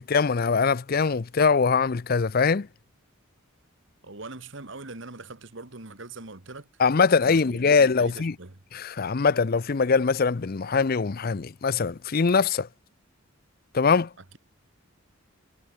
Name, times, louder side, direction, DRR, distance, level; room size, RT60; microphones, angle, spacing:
voice 1, 0.0-2.7 6.8-8.3 8.7-12.7 13.7-14.1, left 5 dB, 45° left, 0.5 m, -22 dB
voice 2, 4.0-6.7 7.2-8.6, right 3 dB, 60° right, 1.7 m, -42 dB
head